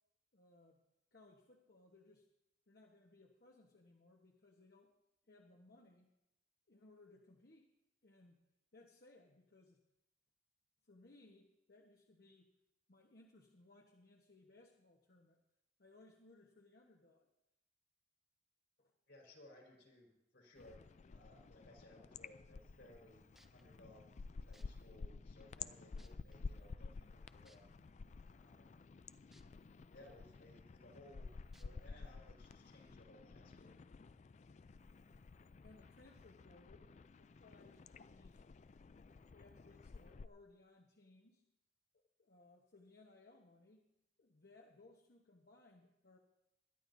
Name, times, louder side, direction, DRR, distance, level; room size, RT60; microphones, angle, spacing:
voice 1, 0.3-0.8 1.1-2.3 2.7-4.9 5.3-6.1 6.7-7.7 8.0-8.4 8.7-9.8 10.8-12.5 12.9-15.4 15.8-17.3 18.8-18.9 35.4-36.9 37.2-38.4 39.3-41.4 41.9-43.9 44.2-46.2, left 2 dB, 60° left, 1 dB, 1.2 m, -64 dB
voice 2, 19.1-20.8 21.1-24.1 24.4-27.7 28.3-28.8 29.9-33.8, left 1 dB, 75° left, -1 dB, 4.2 m, -62 dB
sound 1, 20.6-40.3, left 4 dB, 40° left, 0.3 m, -52 dB
sound 2, 23.4-23.6 24.5-24.6 25.4-25.5 26.0-26.3 27.5-27.6 29.3-29.4 29.9-30.0 31.5-31.6 32.4-32.5, right 1 dB, ahead, 0.8 m, -67 dB
21.5 x 11.5 x 2.7 m, 0.89 s
head